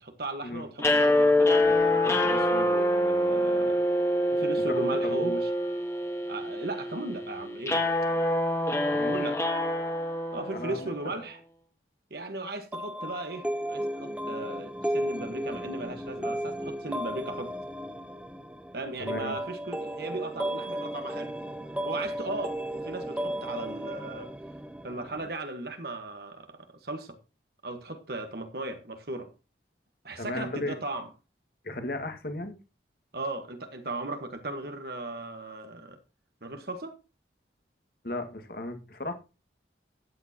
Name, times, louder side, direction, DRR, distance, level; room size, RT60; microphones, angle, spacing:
voice 1, 0.0-3.8 4.3-5.5 6.3-7.8 9.0-9.4 10.3-11.4 12.1-17.5 18.7-21.3 21.8-24.3 24.8-27.2 27.6-29.3 30.0-31.1 33.1-36.0 36.4-37.0, right 2 dB, 55° right, 1.5 m, -37 dB
sound 1, 0.8-11.0, left 1 dB, 15° left, 1.4 m, -26 dB
voice 2, 4.7-5.3 8.9-9.3 10.5-11.1 19.0-19.4 30.2-30.8 31.6-32.6 38.0-39.1, left 2 dB, 55° left, 1.9 m, -35 dB
sound 2, 12.7-25.3, equal, 5° right, 0.8 m, -34 dB
13.0 x 9.0 x 2.9 m
head